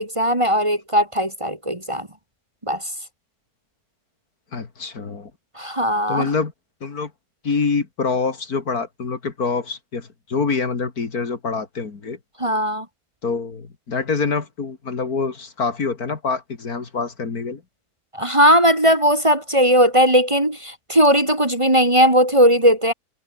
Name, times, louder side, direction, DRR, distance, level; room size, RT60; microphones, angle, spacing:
voice 1, 0.0-2.1 2.7-2.8 5.6-6.3 12.4-12.9 18.1-22.9, equal, 20° right, 2.2 m, -17 dB
voice 2, 4.5-5.3 6.1-6.5 6.8-7.1 7.4-12.2 13.2-17.6, left 4 dB, 65° left, 2.9 m, -25 dB
omnidirectional pair, 1.8 m